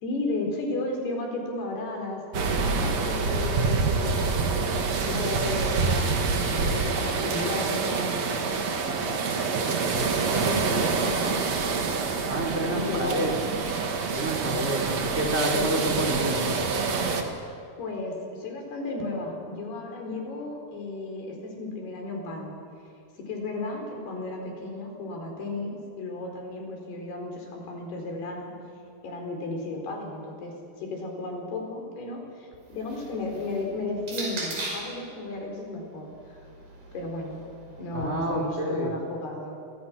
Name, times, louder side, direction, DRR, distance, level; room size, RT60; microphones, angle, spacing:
voice 1, 0.0-4.5 5.1-9.5 10.4-11.3 12.7-13.3 15.5-15.7 17.8-22.6 23.2-28.5 29.0-36.1 36.9-37.5 37.8-39.6, left 2 dB, 70° left, 1 dB, 6.5 m, -34 dB
sound 1, 2.3-17.2, right 4 dB, 45° right, 2.7 m, -26 dB
voice 2, 12.3-13.4 14.1-16.5 37.9-38.9, right 1 dB, 15° right, 1 dB, 4.3 m, -28 dB
sound 2, 32.5-35.0 35.9-38.1, right 2 dB, 65° right, 7.5 m, -39 dB
30.0 x 25.0 x 6.2 m, 2.5 s
omnidirectional pair, 4.8 m